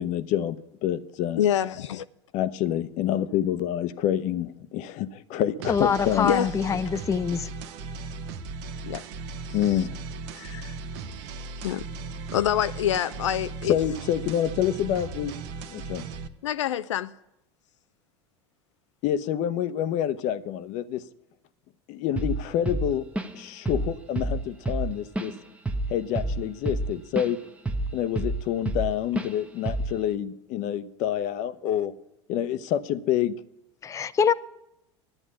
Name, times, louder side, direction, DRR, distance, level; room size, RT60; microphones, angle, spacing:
voice 1, 0.0-1.4 2.3-6.3 9.5-9.9 13.7-15.3 15.7-16.1 19.0-21.0 21.9-23.0 23.3-25.3 25.9-27.4 27.9-31.9 32.3-33.4, left 11 dB, 55° left, 0.8 m, -27 dB
voice 2, 1.4-2.0 6.2-6.5 8.8-9.0 10.3-10.7 11.6-11.9 12.3-13.8 16.4-17.1, left 10 dB, 85° left, 0.4 m, -26 dB
sound 1, 5.6-16.3, right 4 dB, 65° right, 1.0 m, -37 dB
voice 3, 5.7-7.5 33.8-34.3, left 6 dB, 20° left, 0.5 m, -24 dB
Drum kit / Drum, 22.2-22.4 22.7-23.4 23.7-23.9 24.2-27.3 27.7-28.9 29.2-29.3 29.7-30.0, right 2 dB, 10° right, 1.0 m, -28 dB
11.5 x 9.8 x 9.7 m
hypercardioid pair, 85°, 15 cm